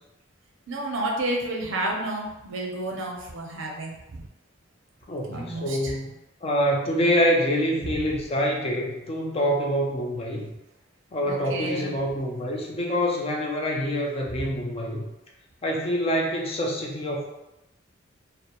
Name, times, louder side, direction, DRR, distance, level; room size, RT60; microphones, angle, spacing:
voice 1, 0.7-4.3 5.3-5.9 11.2-11.9 14.4-14.5, right 1 dB, 75° right, 0 dB, 0.5 m, -31 dB
voice 2, 5.1-6.1 6.4-10.5 11.1-15.0 15.6-17.2, equal, 30° left, -1 dB, 0.4 m, -26 dB
2.1 x 2.0 x 2.8 m, 0.95 s
head